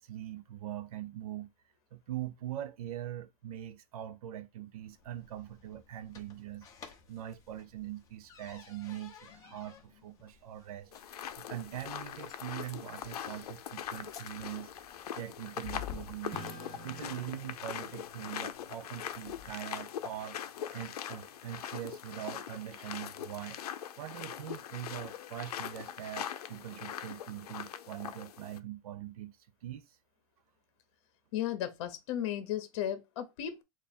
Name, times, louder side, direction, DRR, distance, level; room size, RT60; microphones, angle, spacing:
voice 1, 0.0-1.5 1.9-6.7 7.1-10.9 11.4-16.4 16.7-23.6 24.0-29.3 29.6-29.8, right 12 dB, 75° right, 0.6 m, -42 dB
open front door close creak, 4.8-19.8, left 9 dB, 20° left, 0.7 m, -53 dB
sound 1, 10.9-28.6, left 10 dB, 90° left, 0.5 m, -42 dB
Acoustic guitar / Strum, 16.3-21.1, right 1 dB, 20° right, 0.8 m, -51 dB
voice 2, 31.3-33.6, left 11 dB, 50° left, 0.8 m, -35 dB
3.4 x 2.4 x 4.2 m
supercardioid pair, 160°, 19 cm